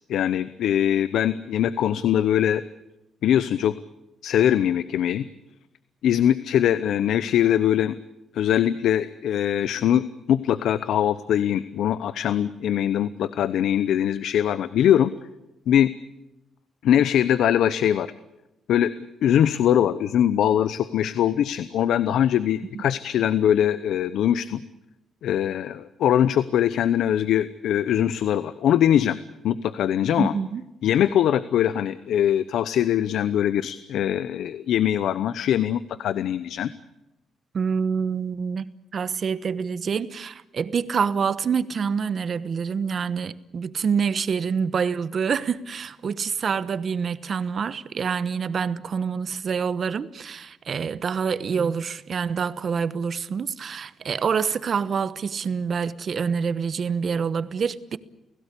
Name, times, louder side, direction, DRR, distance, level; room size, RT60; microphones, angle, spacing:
voice 1, 0.1-2.6 3.2-3.7 4.2-5.2 6.0-7.9 8.3-15.1 15.7-15.9 16.8-18.1 18.7-18.9 19.2-24.6 25.2-29.2 29.4-30.3 30.8-36.7, left 10 dB, 75° left, 0.8 m, -22 dB
voice 2, 30.2-30.6 37.5-58.0, right 6 dB, 45° right, 1.1 m, -26 dB
30.0 x 17.5 x 8.4 m
cardioid pair, 135°, 0 cm